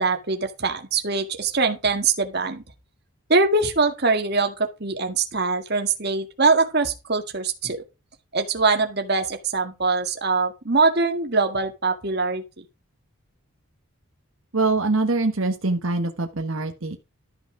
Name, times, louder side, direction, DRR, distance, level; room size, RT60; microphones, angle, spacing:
voice 1, 0.0-2.6 3.3-7.8 8.3-12.4, right 4 dB, 45° right, 1.8 m, -23 dB
voice 2, 14.5-17.0, right 3 dB, 65° right, 1.3 m, -24 dB
13.0 x 6.0 x 4.8 m
head